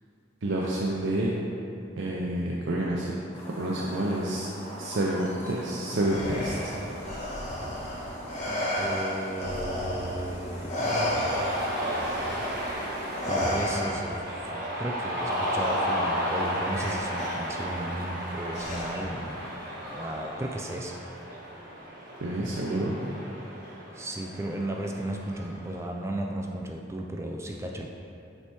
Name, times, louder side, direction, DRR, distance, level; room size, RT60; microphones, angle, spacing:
voice 1, 0.4-1.3 2.0-3.2 3.5-4.5 4.8-6.7 22.2-22.9, right 1 dB, 80° right, -3 dB, 0.6 m, -28 dB
sound 1, 3.3-13.6, equal, 15° left, 1.2 m, -41 dB
Respiratory sounds, 6.0-10.3 10.7-14.3 15.6-15.8 16.8-17.3 18.5-19.2, left 1 dB, 35° left, 1.4 m, -32 dB
voice 2, 8.8-10.9 13.3-19.5 19.9-21.1 23.9-27.9, right 1 dB, 15° right, 0 dB, 0.3 m, -35 dB
Cheering, 10.8-25.7, equal, 50° right, 1.2 m, -33 dB
7.1 x 3.3 x 4.5 m, 2.6 s
head